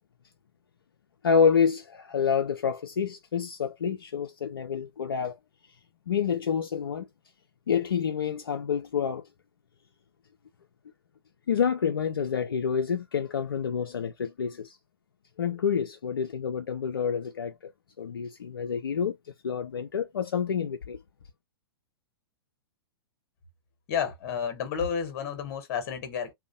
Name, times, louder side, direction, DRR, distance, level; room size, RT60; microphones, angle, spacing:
voice 1, 1.2-5.4 6.1-7.1 7.7-9.3 11.5-14.8 15.4-17.7 18.0-21.0, left 7 dB, 65° left, 0.4 m, -28 dB
voice 2, 23.9-26.3, left 7 dB, 40° left, 0.9 m, -31 dB
2.6 x 2.1 x 2.5 m
figure-of-eight pair, 105°, 13 cm